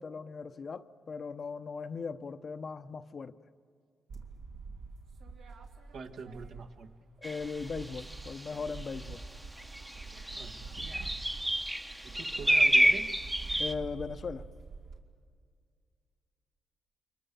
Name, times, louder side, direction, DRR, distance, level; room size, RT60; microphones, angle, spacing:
voice 1, 0.0-3.4 7.2-9.2 13.6-14.5, left 5 dB, 45° left, 0.8 m, -38 dB
sound 1, 4.1-7.0 7.3-15.0, right 4 dB, 85° right, 2.9 m, -46 dB
voice 2, 5.9-6.9 10.3-11.1 12.0-13.1, right 4 dB, 70° right, 1.5 m, -44 dB
sound 2, 7.2-7.4 7.9-8.3 9.2-9.3 9.6-13.7, right 1 dB, 10° right, 0.9 m, -28 dB
29.0 x 23.5 x 6.9 m
cardioid pair, 90°, 0 cm